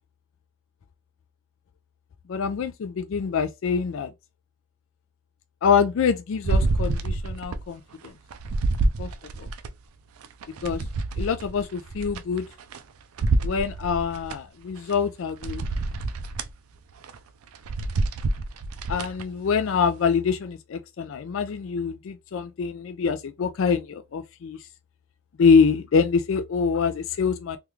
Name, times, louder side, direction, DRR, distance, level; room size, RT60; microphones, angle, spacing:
voice 1, 2.3-4.1 5.6-7.8 9.0-9.1 10.6-10.8 11.2-12.4 13.4-15.6 18.9-24.6 25.4-27.6, left 6 dB, 60° left, 0.3 m, -24 dB
sound 1, 6.4-7.7 8.0-9.7 10.2-12.8 13.2-14.4 14.9-15.0 15.4-16.5 17.0-17.2 17.5-19.2 19.7-19.8, right 2 dB, 80° right, 0.4 m, -27 dB
3.4 x 2.3 x 3.0 m
head